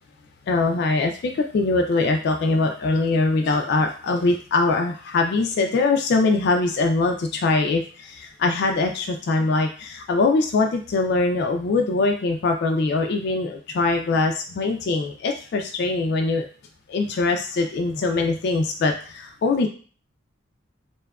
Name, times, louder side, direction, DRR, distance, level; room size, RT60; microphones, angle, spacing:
voice 1, 0.5-16.4 16.9-19.7, left 3 dB, 55° left, 4 dB, 0.3 m, -22 dB
2.7 x 2.3 x 2.2 m, 0.39 s
head